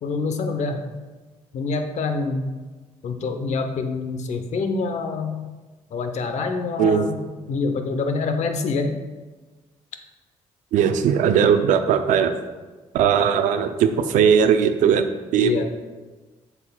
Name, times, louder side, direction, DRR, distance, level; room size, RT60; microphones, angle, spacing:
voice 1, 0.0-0.8 1.5-2.5 3.0-5.4 5.9-7.2 7.5-8.9 15.4-15.6, left 4 dB, 65° left, 6 dB, 0.7 m, -26 dB
voice 2, 10.7-12.3 12.9-15.6, right 7 dB, 80° right, 9 dB, 0.5 m, -19 dB
7.8 x 5.7 x 2.3 m, 1.3 s
supercardioid pair, 65°, 13 cm